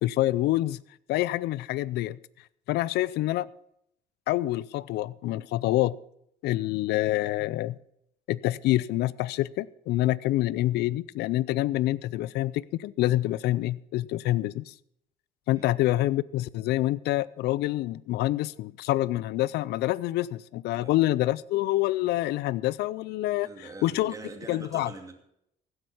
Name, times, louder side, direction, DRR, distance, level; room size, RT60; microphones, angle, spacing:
voice 1, 0.0-0.8 1.1-2.2 2.7-3.5 4.3-6.0 6.4-7.8 8.3-14.7 15.5-24.1 24.5-24.9, left 16 dB, 80° left, 21 dB, 0.5 m, -27 dB
voice 2, 23.4-25.1, right 3 dB, 20° right, 4 dB, 2.6 m, -43 dB
16.0 x 8.1 x 5.6 m, 0.76 s
cardioid pair, 110°, 17 cm